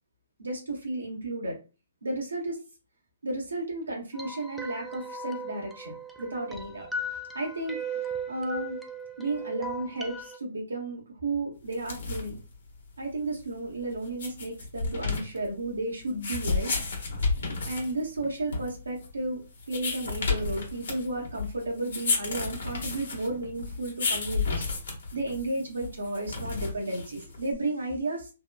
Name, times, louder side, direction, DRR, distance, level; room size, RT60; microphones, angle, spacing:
voice 1, 0.4-1.6 2.0-2.6 3.2-6.9 7.3-8.8 9.2-12.4 13.0-16.7 17.4-19.4 19.7-24.7 25.1-28.3, right 2 dB, 85° right, 0 dB, 0.8 m, -33 dB
sound 1, 4.1-10.4, right 2 dB, ahead, 0.3 m, -37 dB
sound 2, 11.7-27.5, left 4 dB, 65° left, 0.8 m, -33 dB
2.8 x 2.1 x 2.2 m, 0.31 s
hypercardioid pair, 130°, 0 cm